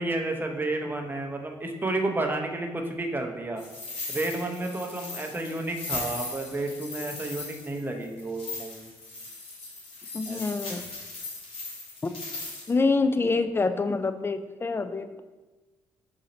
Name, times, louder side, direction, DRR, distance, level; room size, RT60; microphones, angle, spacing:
voice 1, 0.0-3.6 4.1-8.9 10.3-10.4, right 2 dB, 20° right, 3 dB, 0.7 m, -31 dB
sound 1, 3.6-12.7, left 3 dB, 70° left, 1.5 m, -38 dB
voice 2, 10.1-10.8 12.0-12.1 12.7-15.1, left 3 dB, 25° left, 9 dB, 0.3 m, -26 dB
3.8 x 2.8 x 4.2 m, 1.2 s
supercardioid pair, 55°, 10 cm